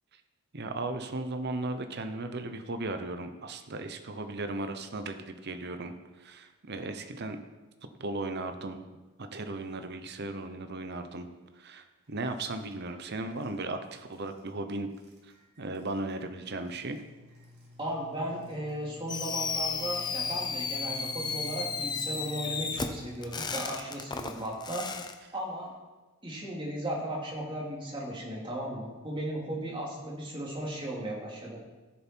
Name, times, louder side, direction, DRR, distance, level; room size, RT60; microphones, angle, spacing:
voice 1, 0.5-7.4 8.0-8.9 9.2-11.3 11.6-14.9 15.6-17.0, right 2 dB, 50° right, 7 dB, 0.9 m, -36 dB
sound 1, 12.3-12.9 13.1-13.5 14.1-14.5 14.9-23.4, left 1 dB, 85° right, 3.8 m, -50 dB
voice 2, 17.8-24.9 25.3-25.7 26.2-31.6, right 1 dB, 25° right, -3 dB, 2.7 m, -36 dB
Fireworks, 19.1-25.1, left 5 dB, 20° left, 0.6 m, -34 dB
15.5 x 7.0 x 4.6 m, 1.2 s
head